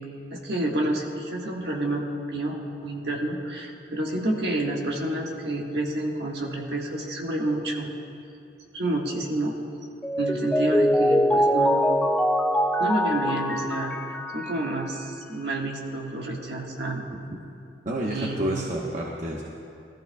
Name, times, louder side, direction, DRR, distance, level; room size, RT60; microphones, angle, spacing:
voice 1, 0.3-7.9 8.7-9.6 10.2-12.0 12.8-17.0 18.1-18.6, right 1 dB, 65° right, -1 dB, 1.6 m, -29 dB
Mallet percussion, 10.0-15.0, equal, 5° left, 0.3 m, -23 dB
voice 2, 17.8-19.4, right 1 dB, 45° right, -3 dB, 1.0 m, -29 dB
20.0 x 14.0 x 2.3 m, 2.6 s
head